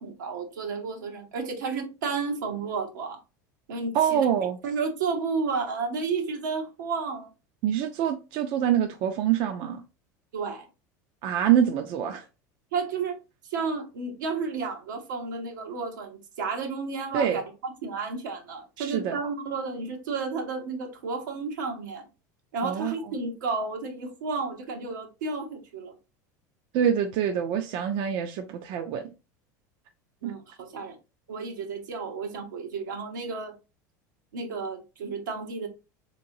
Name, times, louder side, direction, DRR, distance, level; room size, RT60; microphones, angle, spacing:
voice 1, 0.0-3.2 3.7-4.3 4.6-7.3 10.3-10.7 12.7-13.2 13.5-22.1 22.5-25.9 30.2-31.0 31.3-33.5 34.3-35.7, right 4 dB, 90° right, 1.0 m, -32 dB
voice 2, 3.9-4.6 7.6-9.8 11.2-12.2 17.1-17.4 18.8-19.2 22.6-22.9 26.7-29.0 30.2-30.3, right 9 dB, 55° right, 0.5 m, -25 dB
3.7 x 2.9 x 2.6 m
supercardioid pair, 105°, 10 cm